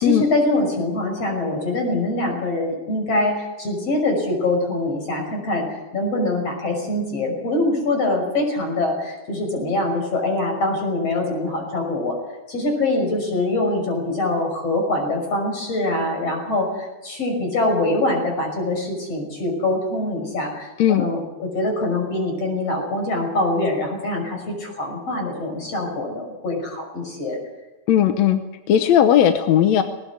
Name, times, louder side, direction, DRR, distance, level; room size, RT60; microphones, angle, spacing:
voice 1, 0.0-12.2 12.5-27.4, left 2 dB, 50° left, 2 dB, 7.0 m, -24 dB
voice 2, 27.9-28.4 28.7-29.8, left 10 dB, 70° left, 7 dB, 2.0 m, -16 dB
19.5 x 19.0 x 8.6 m, 1.1 s
omnidirectional pair, 3.6 m